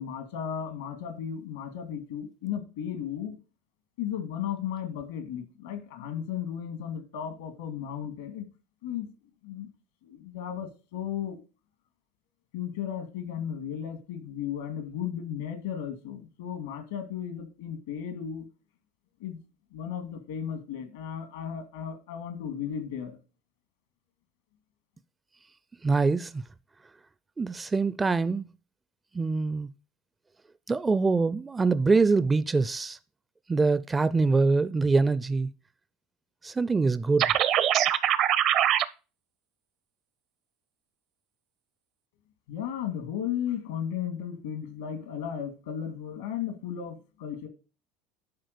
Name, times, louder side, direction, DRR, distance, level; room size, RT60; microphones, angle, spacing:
voice 1, 0.0-3.4 4.0-8.5 8.8-9.1 9.4-9.7 10.0-11.4 12.5-18.4 19.2-19.4 19.7-23.2 42.5-47.5, left 9 dB, 85° left, 2.2 m, -35 dB
voice 2, 25.8-26.4 27.4-28.4 29.1-29.7 30.7-33.0 33.5-35.5 36.4-37.3, right 4 dB, 20° right, 0.4 m, -24 dB
sound 1, 37.2-38.8, right 11 dB, 55° right, 0.7 m, -23 dB
10.5 x 3.9 x 6.7 m
supercardioid pair, 95°, 0 cm